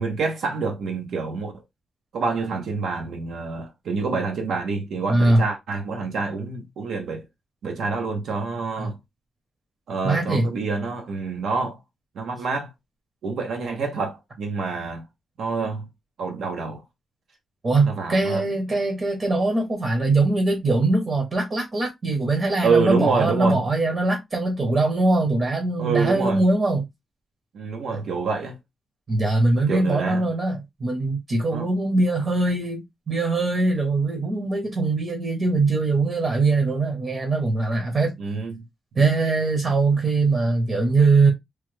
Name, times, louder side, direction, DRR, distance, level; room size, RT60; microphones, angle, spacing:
voice 1, 0.0-1.5 2.1-7.2 7.6-9.0 9.9-11.8 12.1-12.7 13.2-15.0 15.4-15.9 16.2-16.8 17.8-18.5 22.6-23.6 25.8-26.4 27.5-28.5 29.6-30.3 31.5-31.7 38.2-38.7 39.0-39.1, right 4 dB, 85° right, 0.8 m, -27 dB
voice 2, 5.1-5.4 8.8-8.9 10.0-10.5 17.6-26.8 27.9-28.0 29.1-38.2 39.0-41.3, right 3 dB, 40° right, 0.8 m, -22 dB
3.1 x 2.2 x 3.0 m
wide cardioid pair, 150°, 0 cm